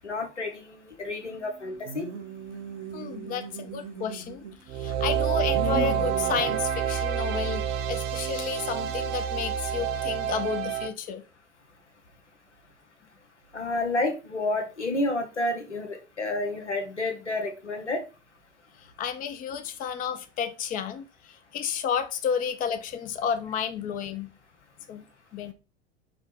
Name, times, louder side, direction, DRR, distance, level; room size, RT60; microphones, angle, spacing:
voice 1, 0.0-2.1 13.5-18.0, left 2 dB, 90° left, 0.9 m, -30 dB
sound 1, 1.9-4.7 5.1-6.6, right 6 dB, 50° right, 0.8 m, -37 dB
voice 2, 2.9-11.2 18.8-24.3 24.9-25.0 25.3-25.5, left 7 dB, 25° left, 0.5 m, -32 dB
sound 2, 4.7-10.9, right 9 dB, 30° right, 0.4 m, -28 dB
5.1 x 2.1 x 4.2 m
figure-of-eight pair, 80°, 34 cm